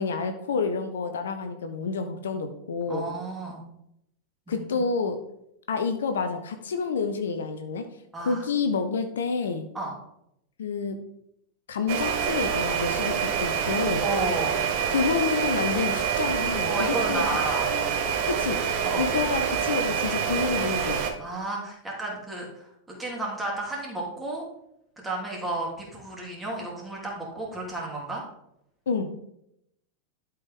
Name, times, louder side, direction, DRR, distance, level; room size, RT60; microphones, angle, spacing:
voice 1, 0.0-3.1 4.5-5.2 5.7-7.9 8.2-9.6 10.6-11.0 11.7-14.0 14.9-17.2 17.7-17.9 18.3-18.6 18.9-21.0 28.9-29.1, left 5 dB, 65° left, 7 dB, 0.7 m, -28 dB
voice 2, 2.9-3.6 4.5-4.8 8.1-8.4 9.7-9.9 14.0-14.6 16.6-17.7 18.8-19.1 21.2-24.4 25.0-28.2, right 2 dB, 10° right, -3 dB, 3.0 m, -32 dB
sound 1, 11.9-21.1, right 7 dB, 45° right, 1.0 m, -26 dB
11.5 x 4.6 x 3.7 m, 0.78 s
figure-of-eight pair, 90°, 0 cm